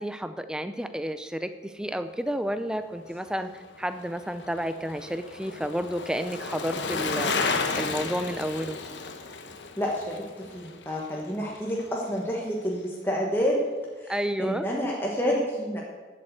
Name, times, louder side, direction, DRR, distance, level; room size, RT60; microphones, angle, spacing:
voice 1, 0.0-8.8 11.4-11.5 14.1-14.7, equal, 5° right, 10 dB, 0.5 m, -31 dB
Bicycle, 3.5-11.9 12.2-12.3, left 4 dB, 70° left, 1.1 m, -33 dB
voice 2, 9.8-13.6 14.0-15.8, equal, 10° left, -3 dB, 1.2 m, -29 dB
11.5 x 7.6 x 8.0 m, 1.4 s
head